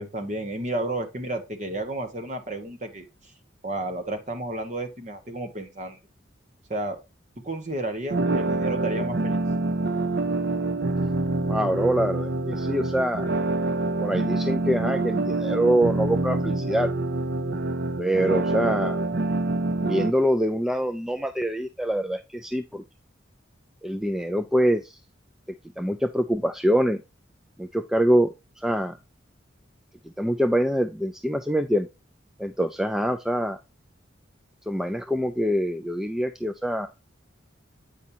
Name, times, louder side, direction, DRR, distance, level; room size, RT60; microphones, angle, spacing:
voice 1, 0.0-3.1 3.6-6.0 6.7-7.0 7.4-9.4, right 1 dB, 40° right, 7 dB, 1.2 m, -32 dB
sound 1, 8.1-20.1, right 2 dB, 60° right, 0.6 m, -26 dB
voice 2, 11.5-13.3 14.0-16.9 18.0-19.0 19.8-22.8 23.8-25.0 25.8-27.0 27.6-29.0 30.2-31.9 32.4-33.6 34.7-36.9, equal, ahead, 7 dB, 0.3 m, -25 dB
8.5 x 5.3 x 2.7 m, 0.27 s
head